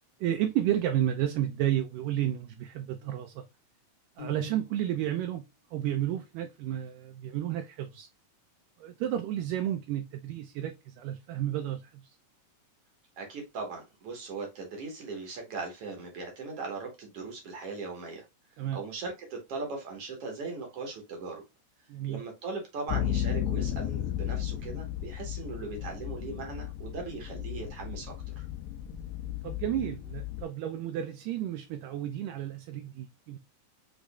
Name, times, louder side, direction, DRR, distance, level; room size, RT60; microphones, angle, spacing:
voice 1, 0.2-3.5 4.2-5.4 5.7-8.1 8.8-12.2 18.6-18.8 21.9-22.2 29.4-33.4, right 11 dB, 80° right, 2.0 m, -32 dB
Piano, 4.2-5.2, left 4 dB, 70° left, 1.1 m, -46 dB
voice 2, 13.2-18.2 18.7-21.4 22.1-28.4, right 4 dB, 65° right, 1.5 m, -39 dB
sound 1, 22.9-30.4, left 11 dB, 85° left, 2.4 m, -34 dB
6.4 x 3.0 x 2.3 m
omnidirectional pair, 4.2 m